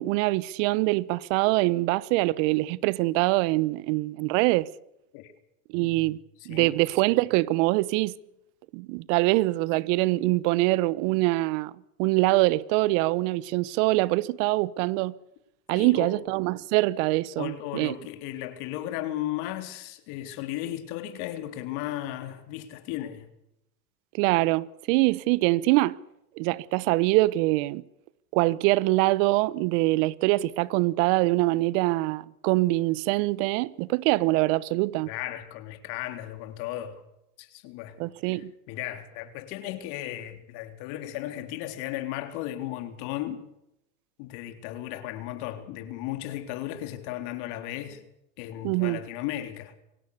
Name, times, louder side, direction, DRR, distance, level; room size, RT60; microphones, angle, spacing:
voice 1, 0.0-4.7 5.7-6.2 6.4-8.1 8.7-15.1 15.7-17.9 24.1-26.0 26.4-27.8 28.3-35.1 38.0-38.5 48.6-49.0, right 20 dB, 60° right, 1.1 m, -24 dB
voice 2, 5.8-6.1 6.5-6.8 15.7-16.2 17.4-23.3 35.1-37.0 37.4-38.0 38.3-43.5 44.2-48.0 48.4-49.7, left 13 dB, 60° left, 3.6 m, -35 dB
24.0 x 18.0 x 6.8 m
hypercardioid pair, 95°, 43 cm